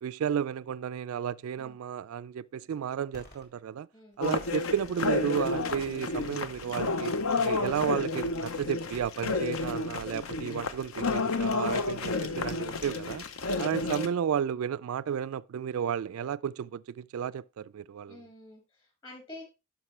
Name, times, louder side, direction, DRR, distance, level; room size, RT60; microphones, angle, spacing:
voice 1, 0.0-3.9 4.2-7.1 7.4-13.2 13.6-18.2, right 8 dB, 70° right, 0.3 m, -32 dB
sound 1, 3.1-3.4 4.1-4.8 5.7-6.4 6.8-7.0 7.3-7.9, left 1 dB, 50° left, 2.8 m, -52 dB
sound 2, 4.2-14.1, left 3 dB, 70° left, 0.8 m, -31 dB
voice 2, 18.1-19.4, left 1 dB, 25° left, 5.3 m, -49 dB
11.0 x 5.9 x 3.2 m
head